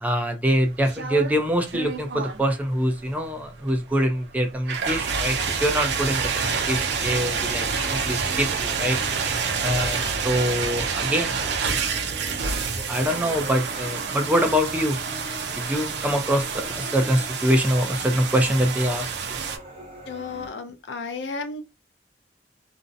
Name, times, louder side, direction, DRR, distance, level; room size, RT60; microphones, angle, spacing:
voice 1, 0.0-9.0 9.6-12.1 12.4-15.0 15.5-19.1, equal, 10° right, 0.4 m, -25 dB
sound 1, 0.6-19.6, right 5 dB, 70° right, 0.5 m, -28 dB
sound 2, 6.8-20.5, equal, 35° right, 0.8 m, -42 dB
voice 2, 20.1-21.6, left 4 dB, 80° left, 0.5 m, -33 dB
2.6 x 2.0 x 2.5 m
head